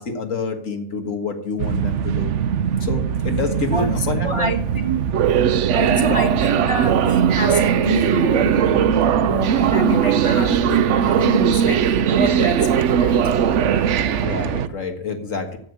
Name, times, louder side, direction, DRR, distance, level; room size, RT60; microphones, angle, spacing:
voice 1, 0.0-2.3 2.8-4.5 6.1-6.3 14.2-15.6, left 4 dB, 75° left, 2.0 m, -27 dB
sound 1, 1.6-14.7, right 8 dB, 70° right, 0.9 m, -19 dB
voice 2, 3.7-5.1 5.7-8.9 9.2-11.8 12.1-13.3, right 3 dB, 45° right, 0.4 m, -25 dB
9.5 x 8.1 x 8.1 m
omnidirectional pair, 1.4 m